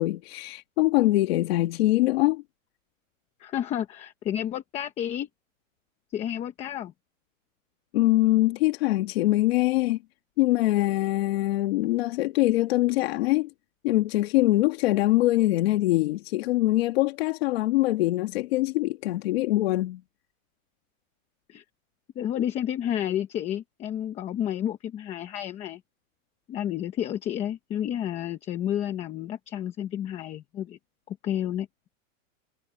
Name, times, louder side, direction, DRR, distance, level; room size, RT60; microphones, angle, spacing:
voice 1, 0.0-2.4 7.9-10.0 10.4-13.5 13.8-20.0, left 17 dB, 50° left, 1.4 m, -23 dB
voice 2, 3.4-5.3 6.1-6.9 21.5-21.6 22.1-25.8 26.5-30.8 31.1-31.7, left 10 dB, 15° left, 0.9 m, -31 dB
supercardioid pair, 175°, 40 cm